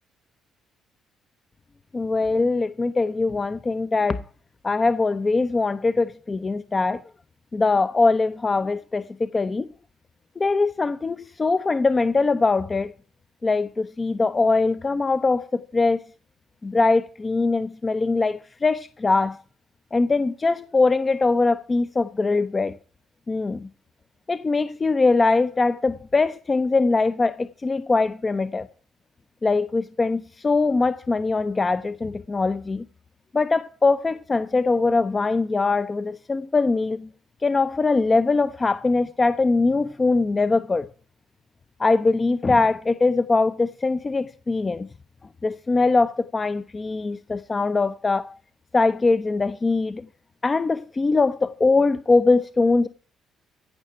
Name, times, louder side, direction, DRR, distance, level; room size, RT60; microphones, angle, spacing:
voice 1, 1.9-4.2 4.6-7.0 7.5-9.7 10.4-12.9 13.4-16.0 16.6-19.4 19.9-22.8 23.3-23.7 24.3-28.7 29.4-32.8 33.3-37.1 37.4-40.9 41.8-44.9 45.4-48.3 48.7-50.0 50.4-52.9, left 3 dB, 30° left, 0.7 m, -22 dB
15.5 x 5.8 x 8.9 m
supercardioid pair, 65°, 0 cm